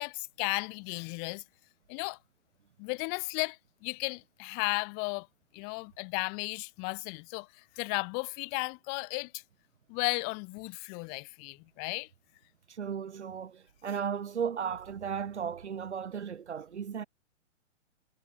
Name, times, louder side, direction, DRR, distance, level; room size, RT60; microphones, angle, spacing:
voice 1, 0.0-1.4 1.9-2.2 2.8-5.3 5.5-9.4 9.9-12.1, left 38 dB, 25° left, 1.0 m, -34 dB
voice 2, 12.7-17.0, right 7 dB, 65° right, 4.8 m, -35 dB
figure-of-eight pair, 115°, 37 cm